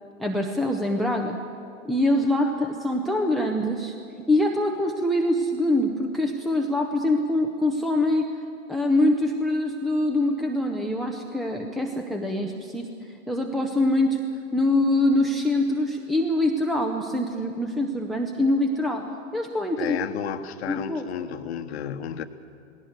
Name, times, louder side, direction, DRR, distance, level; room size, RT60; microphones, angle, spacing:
voice 1, 0.2-1.4 1.9-4.0 4.3-8.4 8.7-12.9 13.3-14.2 14.5-20.0 20.7-21.0, left 1 dB, ahead, 4 dB, 0.7 m, -24 dB
voice 2, 19.8-22.2, left 9 dB, 55° left, 10 dB, 1.2 m, -32 dB
19.0 x 17.5 x 8.2 m, 2.4 s
hypercardioid pair, 125°, 39 cm